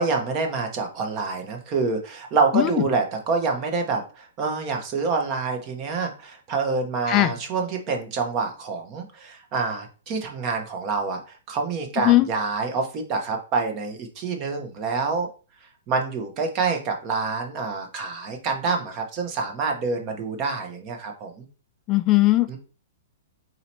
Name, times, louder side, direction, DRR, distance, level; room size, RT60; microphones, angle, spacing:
voice 1, 0.0-11.2 11.5-15.3 15.9-21.5 22.5-22.6, right 4 dB, 25° right, 4 dB, 0.9 m, -27 dB
voice 2, 2.5-2.8 7.1-7.3 12.0-12.3 21.9-22.6, left 16 dB, 25° left, 11 dB, 0.4 m, -19 dB
4.1 x 2.9 x 4.3 m, 0.37 s
hypercardioid pair, 165°, 0 cm